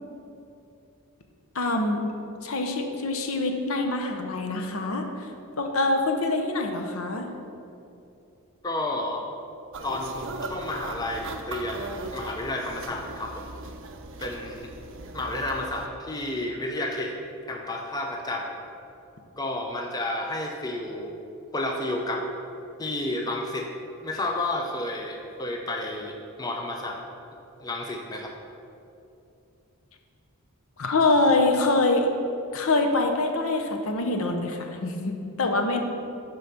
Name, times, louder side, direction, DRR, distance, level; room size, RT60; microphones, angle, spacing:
voice 1, 1.5-2.0 2.4-5.1 5.6-7.3 30.8-32.1 32.5-35.8, left 2 dB, 65° left, 4 dB, 0.7 m, -24 dB
voice 2, 8.6-9.2 9.8-13.5 14.2-14.7 15.1-17.2 17.5-18.6 19.4-21.1 21.5-22.3 22.8-23.7 24.0-27.0 27.6-28.3, left 1 dB, 15° left, 1 dB, 0.5 m, -31 dB
sound 1, 9.7-15.9, right 2 dB, 60° right, 0.6 m, -38 dB
8.8 x 3.9 x 5.8 m, 2.7 s
head